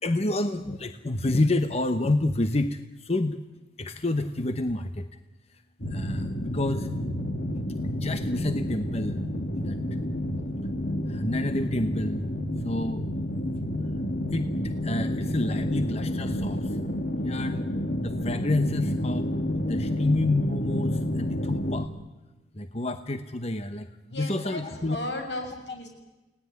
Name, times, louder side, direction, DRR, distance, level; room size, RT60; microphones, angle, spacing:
voice 1, 0.0-3.4 3.8-5.1 5.5-5.6 5.9-6.9 7.8-9.2 9.6-9.8 11.1-12.3 12.6-13.1 14.3-16.8 17.2-17.6 18.0-19.3 19.6-21.9 22.5-25.0, left 2 dB, 35° left, 9 dB, 1.0 m, -29 dB
sound 1, 5.8-21.9, left 1 dB, 55° left, 1.8 m, -30 dB
voice 2, 24.1-25.9, left 1 dB, 80° left, 4 dB, 7.1 m, -35 dB
29.5 x 18.5 x 9.6 m, 1.1 s
head